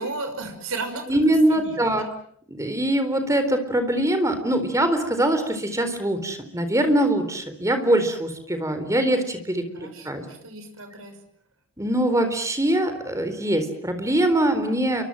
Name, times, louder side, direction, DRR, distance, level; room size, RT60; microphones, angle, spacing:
voice 1, 0.0-1.9 9.7-11.2, right 3 dB, 70° right, 6 dB, 6.1 m, -34 dB
voice 2, 1.1-2.1 2.5-10.2 11.8-15.0, right 1 dB, 15° right, 9 dB, 4.0 m, -23 dB
29.5 x 24.5 x 7.7 m, 0.65 s
head